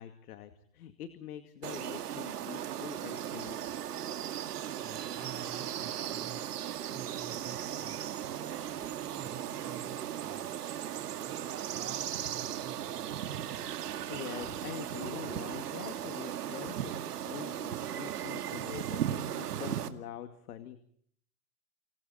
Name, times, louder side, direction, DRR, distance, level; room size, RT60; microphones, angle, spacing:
voice 1, 0.0-3.6 13.8-20.8, left 10 dB, 75° left, 9 dB, 2.4 m, -45 dB
sound 1, 1.6-19.9, right 10 dB, 85° right, 2.2 m, -37 dB
voice 2, 4.8-6.4 6.9-8.1 8.5-10.5 10.9-13.4, right 9 dB, 30° right, 5 dB, 3.4 m, -49 dB
30.0 x 27.5 x 4.3 m, 0.63 s
hypercardioid pair, 120°, 45 cm